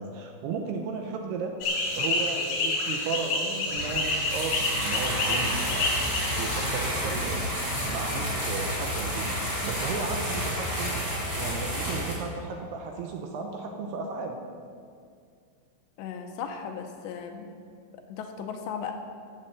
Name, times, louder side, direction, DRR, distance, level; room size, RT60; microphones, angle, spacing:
voice 1, 0.0-1.6 1.9-6.1 6.4-7.5 7.9-11.0 11.3-14.4, right 4 dB, 80° right, 3 dB, 2.5 m, -35 dB
sound 1, 1.6-6.7, left 2 dB, 55° left, 3.0 m, -29 dB
sound 2, 3.8-12.1, equal, 20° right, 4.2 m, -30 dB
voice 2, 16.0-17.5 18.1-18.9, left 7 dB, 80° left, 4 dB, 2.8 m, -36 dB
14.0 x 7.7 x 8.0 m, 2.2 s
omnidirectional pair, 5.5 m